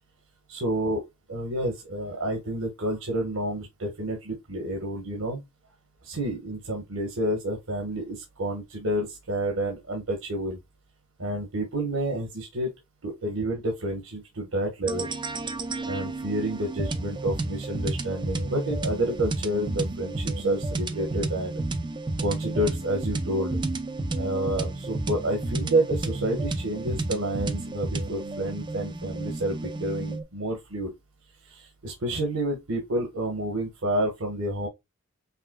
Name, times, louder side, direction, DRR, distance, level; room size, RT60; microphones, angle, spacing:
voice 1, 0.5-1.0 1.3-5.4 6.0-10.6 11.2-12.7 13.0-15.1 15.9-21.6 22.2-23.6 24.2-30.9 31.4-34.7, right 1 dB, 75° right, 1.4 m, -29 dB
sound 1, 14.9-30.2, right 2 dB, 20° right, 0.5 m, -31 dB
5.8 x 3.4 x 2.2 m
head